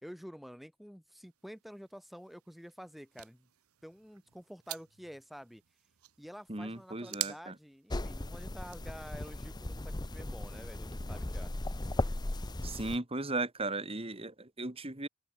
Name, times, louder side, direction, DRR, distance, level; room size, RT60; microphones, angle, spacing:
voice 1, 0.0-3.5 3.8-5.6 6.2-11.5, equal, ahead, 4.1 m, -49 dB
sound 1, 1.2-8.9, right 16 dB, 85° right, 1.2 m, -47 dB
voice 2, 6.5-7.6 12.6-15.1, right 2 dB, 25° right, 2.5 m, -36 dB
sound 2, 7.9-13.0, left 1 dB, 20° left, 0.7 m, -37 dB
open air
head